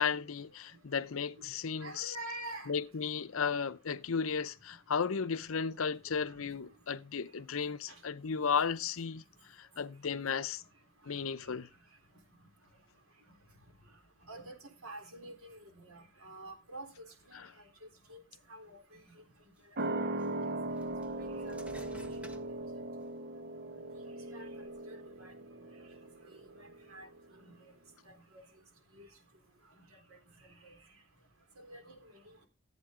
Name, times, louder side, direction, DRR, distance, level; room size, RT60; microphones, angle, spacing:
voice 1, 0.0-2.2 2.7-10.6 11.1-11.7 17.3-17.5, left 6 dB, 70° left, 0.6 m, -34 dB
voice 2, 1.8-2.7 6.4-6.5 14.3-14.6 14.8-15.6 15.9-16.9 17.3-17.4 18.1-18.2 18.5-18.8 20.5-20.6 21.2-21.8 24.3-25.3 26.3-26.4 26.9-27.1 27.4-27.5 28.1-28.2 28.9-29.1 30.6-30.8 31.6-31.9, right 1 dB, 85° right, 3.7 m, -47 dB
sound 1, 19.2-19.3 20.2-23.3 23.8-24.8, equal, 5° right, 1.2 m, -54 dB
sound 2, 19.8-26.8 27.1-27.2, right 2 dB, 50° right, 0.9 m, -39 dB
14.5 x 8.7 x 3.7 m
head